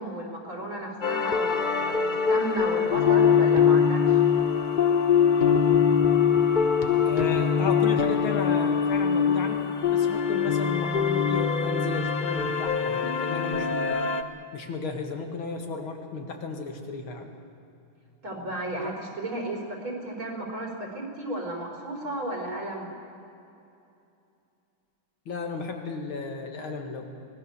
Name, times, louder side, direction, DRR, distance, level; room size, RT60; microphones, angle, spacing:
voice 1, 0.0-4.2 18.2-22.9, right 1 dB, 80° right, -1 dB, 5.0 m, -33 dB
sound 1, 1.0-14.2, left 7 dB, 60° left, 0.4 m, -23 dB
voice 2, 7.0-9.6 9.9-14.0 14.5-17.3 25.3-27.1, left 4 dB, 90° left, 3 dB, 2.8 m, -34 dB
24.5 x 19.0 x 7.0 m, 2.7 s
omnidirectional pair, 2.2 m